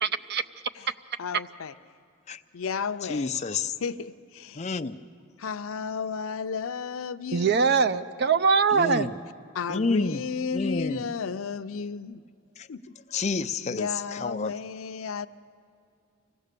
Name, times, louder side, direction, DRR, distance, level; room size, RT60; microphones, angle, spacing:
voice 1, 0.0-0.4 7.3-9.1, right 5 dB, 50° right, 11 dB, 0.5 m, -22 dB
voice 2, 1.2-1.7 2.5-3.3 3.8-4.7 5.4-7.5 9.5-12.2 12.7-12.8 13.7-15.3, left 5 dB, 85° left, 11 dB, 0.5 m, -33 dB
voice 3, 3.0-3.7 4.5-5.0 8.7-9.1 9.7-10.2 10.5-11.0 12.6-12.7 13.1-14.5, left 4 dB, 35° left, 8 dB, 0.5 m, -29 dB
25.0 x 16.5 x 6.7 m, 2.3 s
head